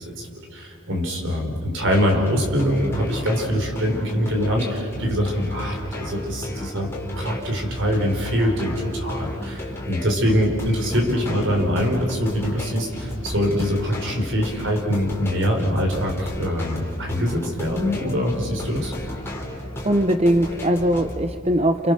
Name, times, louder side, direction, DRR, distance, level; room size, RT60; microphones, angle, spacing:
voice 1, 0.0-6.9 7.2-18.9, equal, 55° right, 1 dB, 4.6 m, -23 dB
sound 1, 1.8-21.2, left 1 dB, 10° left, 3.6 m, -34 dB
voice 2, 19.6-21.9, right 1 dB, 30° right, 8 dB, 0.8 m, -21 dB
29.0 x 28.0 x 6.8 m, 2.6 s
head